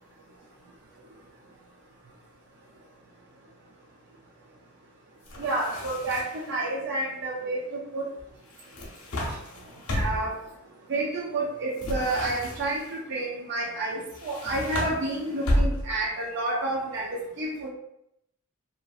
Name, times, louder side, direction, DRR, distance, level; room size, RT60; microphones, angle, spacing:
sound 1, 5.3-6.5 8.5-10.4 11.8-12.9 14.1-16.1, left 1 dB, 80° left, 0.7 m, -31 dB
voice 1, 5.4-8.0 9.9-10.4 10.9-17.7, right 2 dB, 50° right, -3 dB, 0.5 m, -30 dB
2.8 x 2.6 x 2.4 m, 0.80 s
head